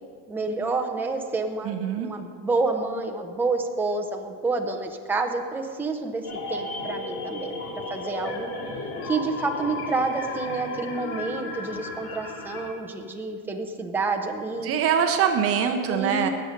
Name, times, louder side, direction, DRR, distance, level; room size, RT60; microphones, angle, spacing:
voice 1, 0.3-7.6 7.9-8.5 9.0-14.7 15.9-16.3, right 3 dB, 5° right, 2 dB, 0.5 m, -28 dB
voice 2, 1.6-2.1 14.6-16.3, right 8 dB, 30° right, 6 dB, 0.8 m, -23 dB
sound 1, 6.2-12.7, left 3 dB, 45° left, 2.3 m, -34 dB
18.5 x 6.6 x 5.2 m, 2.1 s
supercardioid pair, 145°, 44 cm